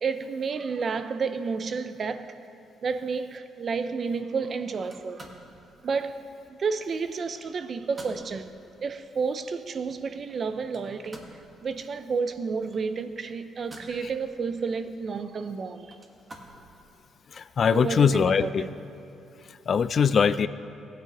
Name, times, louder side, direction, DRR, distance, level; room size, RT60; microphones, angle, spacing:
voice 1, 0.0-2.4 2.8-5.3 5.8-8.5 8.8-11.3 11.6-16.0 17.7-18.7, right 5 dB, 50° right, 0.5 m, -31 dB
sound 1, 4.8-17.1, right 1 dB, 30° right, 1.5 m, -52 dB
voice 2, 17.3-18.6 19.5-20.5, left 6 dB, 50° left, 0.3 m, -22 dB
16.0 x 9.1 x 3.0 m
cardioid pair, 90°, 0 cm